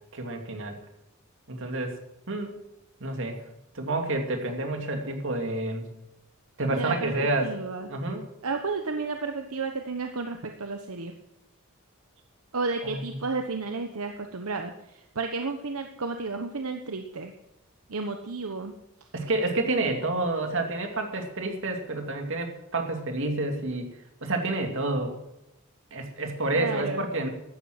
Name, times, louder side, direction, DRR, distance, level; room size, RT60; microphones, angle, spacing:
voice 1, 0.1-0.8 1.5-2.0 2.3-2.6 3.0-3.4 3.7-5.9 6.6-7.5 7.9-8.2 12.8-13.2 19.1-23.9 24.2-25.1 25.9-27.3, right 2 dB, 60° right, 4 dB, 2.5 m, -29 dB
voice 2, 6.7-7.1 7.4-7.9 8.4-11.2 12.5-17.3 17.9-18.7 26.6-27.1, right 3 dB, 80° right, 5 dB, 1.0 m, -32 dB
13.0 x 9.7 x 7.8 m, 0.87 s
head